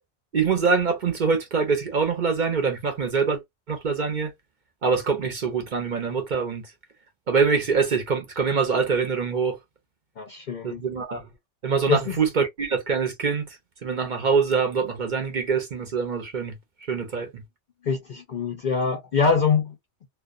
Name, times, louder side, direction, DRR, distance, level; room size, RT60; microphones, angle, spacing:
voice 1, 0.3-3.4 3.7-4.3 4.8-6.6 7.3-9.6 10.6-11.3 11.6-13.5 13.8-16.5 16.9-17.4, right 5 dB, 50° right, 0.7 m, -24 dB
voice 2, 10.2-10.8 11.9-12.1 17.8-19.7, left 5 dB, 60° left, 0.5 m, -24 dB
2.3 x 2.2 x 2.4 m
omnidirectional pair, 1.2 m